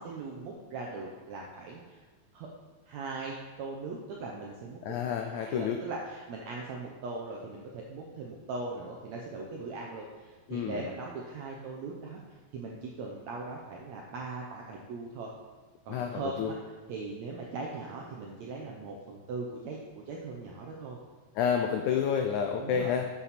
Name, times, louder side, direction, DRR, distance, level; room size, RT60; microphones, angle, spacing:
voice 1, 0.0-2.0 2.3-2.5 2.9-12.2 12.5-15.3 15.9-16.6 16.9-21.0 22.6-22.9, right 3 dB, 80° right, -1 dB, 1.6 m, -40 dB
voice 2, 4.8-5.8 10.5-10.8 15.9-16.5 21.3-23.0, left 7 dB, 90° left, 4 dB, 1.7 m, -29 dB
7.9 x 7.1 x 4.2 m, 1.4 s
omnidirectional pair, 4.0 m